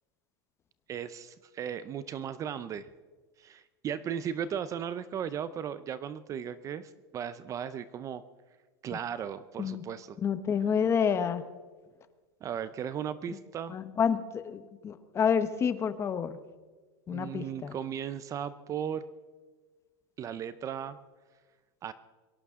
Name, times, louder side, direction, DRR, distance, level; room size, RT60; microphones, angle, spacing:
voice 1, 0.9-2.9 3.4-8.2 8.8-10.2 12.4-13.8 17.1-19.0 20.2-21.0 21.8-21.9, right 8 dB, 25° right, 14 dB, 0.5 m, -36 dB
voice 2, 10.2-11.4 13.7-16.4 17.1-17.7, left 7 dB, 20° left, 12 dB, 0.8 m, -29 dB
23.0 x 17.5 x 3.6 m, 1.4 s
supercardioid pair, 150°, 13 cm